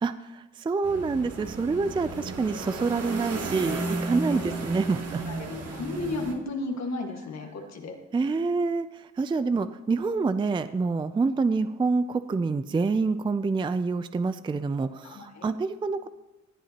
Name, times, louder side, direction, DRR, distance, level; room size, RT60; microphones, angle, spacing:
voice 1, 0.0-5.2 8.1-16.1, right 4 dB, 15° right, 12 dB, 0.4 m, -27 dB
sound 1, 0.8-6.3, right 3 dB, 60° right, 2.3 m, -34 dB
voice 2, 5.3-8.0 15.0-15.4, left 2 dB, 65° left, 2 dB, 1.7 m, -34 dB
19.0 x 11.5 x 2.9 m, 1.1 s
cardioid pair, 110°, 29 cm